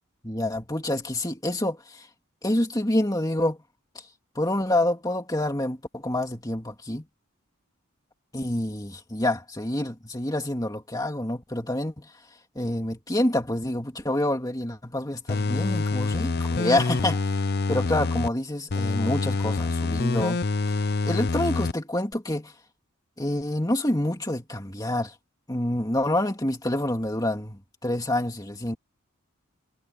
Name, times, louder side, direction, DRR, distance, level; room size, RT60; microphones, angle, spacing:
voice 1, 0.2-2.1 2.4-3.6 3.9-4.1 4.3-7.0 8.3-17.4 17.7-20.4 21.0-22.5 23.2-25.2 25.5-28.8, left 1 dB, 15° left, 2.4 m, -27 dB
sound 1, 15.3-18.3 18.7-21.7 22.1-22.2, left 3 dB, 50° left, 0.6 m, -26 dB
head